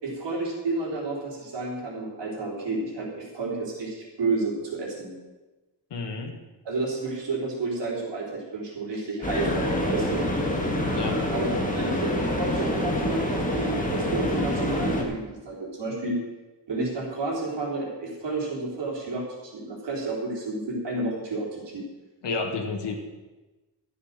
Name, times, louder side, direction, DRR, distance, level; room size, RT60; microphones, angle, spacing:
voice 1, 0.0-5.1 6.6-10.2 11.3-16.2 16.7-21.8, right 3 dB, 80° right, -3 dB, 3.9 m, -31 dB
voice 2, 5.9-6.4 10.9-11.3 22.2-23.0, left 4 dB, 75° left, 2 dB, 1.6 m, -30 dB
sound 1, 9.2-15.0, left 1 dB, 20° left, 1.7 m, -26 dB
12.5 x 7.8 x 6.6 m, 1.2 s
wide cardioid pair, 180°, 42 cm